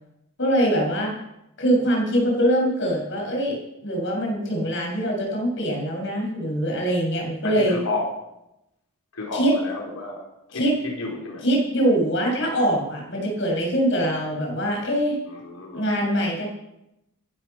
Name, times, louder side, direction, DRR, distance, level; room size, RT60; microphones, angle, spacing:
voice 1, 0.4-1.1 1.6-3.6 3.8-7.8 9.3-9.5 10.5-10.7 11.4-15.2 15.7-16.5, right 1 dB, 55° left, 0 dB, 6.7 m, -23 dB
voice 2, 7.4-8.1 9.1-10.2 10.8-11.4 15.3-15.8, left 3 dB, 80° left, -1 dB, 4.2 m, -31 dB
15.0 x 12.0 x 6.0 m, 0.87 s
head